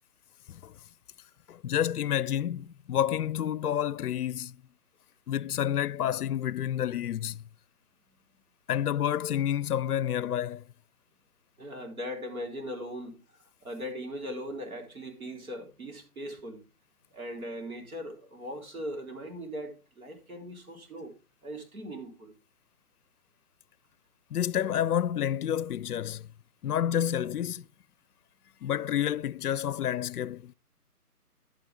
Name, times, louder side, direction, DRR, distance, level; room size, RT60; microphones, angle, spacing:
voice 1, 1.5-4.6 5.3-7.4 8.7-10.6 24.3-26.3 26.6-27.7 28.6-30.5, left 10 dB, 70° left, 0.5 m, -29 dB
voice 2, 11.6-16.6 17.1-21.1 21.4-22.3, equal, 60° right, 3.9 m, -39 dB
11.0 x 9.6 x 3.4 m
hypercardioid pair, 165°, 46 cm